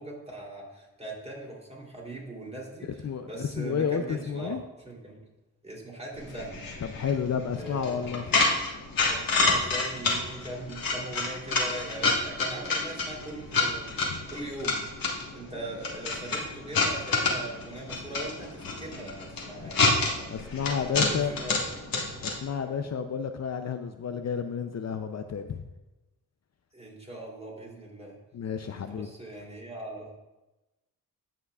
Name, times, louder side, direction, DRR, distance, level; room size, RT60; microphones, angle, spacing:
voice 1, 0.0-5.2 5.6-6.6 7.5-7.9 9.1-14.8 15.3-20.5 20.8-21.8 22.6-22.7 26.7-28.2 28.6-30.1, right 1 dB, 20° right, -2 dB, 2.9 m, -40 dB
voice 2, 3.0-4.6 6.8-8.2 14.0-14.2 19.6-19.7 20.3-21.3 22.2-25.6 28.3-29.1, left 7 dB, 50° left, 7 dB, 0.5 m, -31 dB
sound 1, 6.1-22.4, left 3 dB, 80° left, 1.5 m, -29 dB
15.5 x 5.8 x 2.4 m, 1.0 s
cardioid pair, 65°, 34 cm